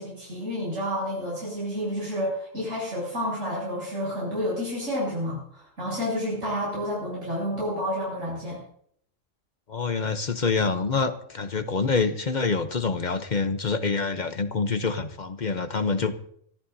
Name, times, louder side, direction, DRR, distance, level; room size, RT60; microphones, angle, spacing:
voice 1, 0.0-8.6, equal, 80° right, -6 dB, 8.1 m, -30 dB
voice 2, 9.7-16.1, left 4 dB, 40° left, 9 dB, 0.8 m, -26 dB
25.0 x 14.0 x 2.7 m, 0.67 s
omnidirectional pair, 1.3 m